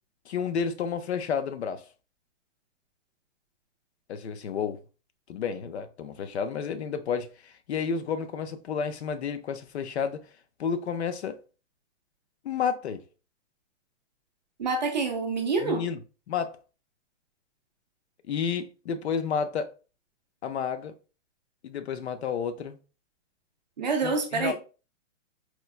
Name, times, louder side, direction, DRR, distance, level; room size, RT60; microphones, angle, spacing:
voice 1, 0.3-1.8 4.1-4.8 5.3-10.2 10.6-11.4 12.4-13.0 15.6-16.0 16.3-16.6 18.3-19.7 20.4-20.9 21.6-22.8 24.0-24.5, left 6 dB, 60° left, 0.5 m, -31 dB
voice 2, 14.6-15.8 23.8-24.5, right 4 dB, 35° right, 0.4 m, -27 dB
4.4 x 2.2 x 2.3 m
hypercardioid pair, 170°, 38 cm